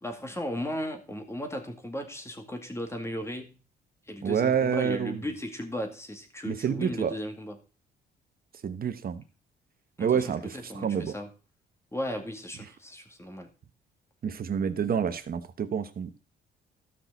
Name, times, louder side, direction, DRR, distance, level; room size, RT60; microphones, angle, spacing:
voice 1, 0.0-3.6 4.1-7.6 10.0-11.3 11.9-13.5, equal, 15° left, 5 dB, 2.0 m, -36 dB
voice 2, 4.2-5.2 6.5-7.1 8.6-9.2 10.0-11.1 14.2-16.1, right 7 dB, 50° right, 10 dB, 1.1 m, -28 dB
13.0 x 6.1 x 4.0 m, 0.35 s
cardioid pair, 90°, 20 cm